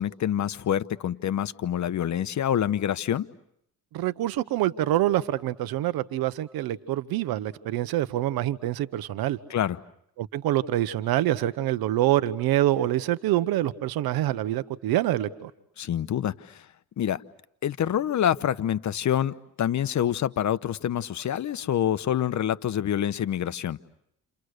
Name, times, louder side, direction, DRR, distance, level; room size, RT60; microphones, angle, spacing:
voice 1, 0.0-3.3 9.5-9.8 15.8-16.7 17.0-17.2 17.6-23.8, left 10 dB, 55° left, 13 dB, 1.0 m, -26 dB
voice 2, 3.9-9.4 10.2-15.5, right 14 dB, 85° right, 13 dB, 1.1 m, -26 dB
29.5 x 29.5 x 6.6 m, 0.74 s
cardioid pair, 90°, 35 cm